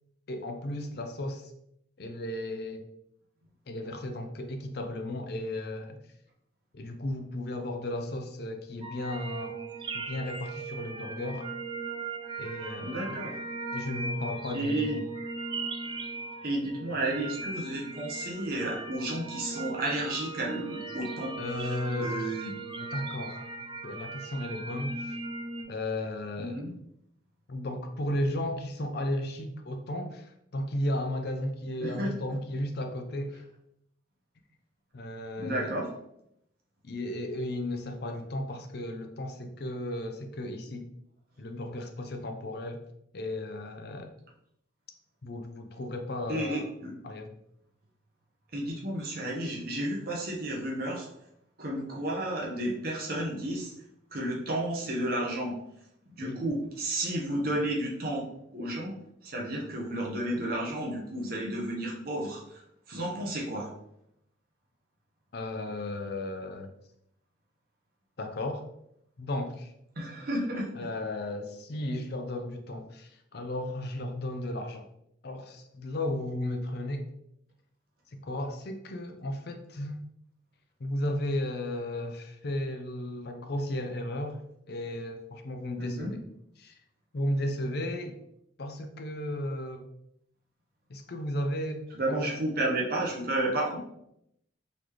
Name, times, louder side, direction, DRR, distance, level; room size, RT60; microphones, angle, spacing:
voice 1, 0.3-1.5 2.0-2.8 3.7-6.0 6.7-9.6 9.9-11.5 12.4-13.2 13.7-15.0 21.4-22.1 22.8-23.4 23.8-25.2 25.7-26.6 27.5-33.4 34.9-35.7 36.8-40.8 41.4-42.8 43.1-44.1 45.2-46.6 47.0-47.3 56.2-56.4 65.3-66.7 68.2-68.7 69.2-69.7 70.7-74.9 75.2-77.1 78.1-80.0 80.8-84.4 84.7-86.2 86.6-86.7 87.1-88.1 88.6-89.9 90.9-92.2, left 1 dB, 55° left, 5 dB, 0.5 m, -34 dB
sound 1, 8.8-25.6, right 3 dB, 25° right, 0.3 m, -38 dB
voice 2, 12.8-13.4 14.5-15.0 16.4-21.3 21.6-22.5 26.4-26.7 31.8-32.2 35.4-35.9 46.3-46.9 48.5-51.1 51.6-53.7 54.1-55.5 56.2-58.3 58.5-58.9 59.2-62.6 62.9-63.7 70.0-70.7 85.8-86.1 91.9-93.8, right 1 dB, 50° right, -2 dB, 0.8 m, -32 dB
4.0 x 3.3 x 2.9 m, 0.76 s
head